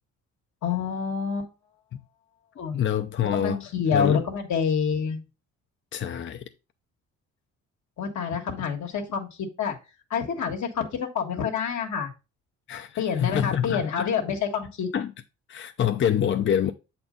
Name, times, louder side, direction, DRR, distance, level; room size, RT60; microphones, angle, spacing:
voice 1, 0.6-1.5 2.6-2.8 3.4-5.2 8.0-9.7 10.1-12.1 13.0-14.9, left 6 dB, 70° left, 1.7 m, -27 dB
voice 2, 2.7-3.6 3.9-4.2 5.9-6.4 12.7-14.1 14.9-15.1 15.5-16.7, left 9 dB, 40° left, 0.5 m, -26 dB
7.6 x 4.3 x 3.8 m
cardioid pair, 90°, 30 cm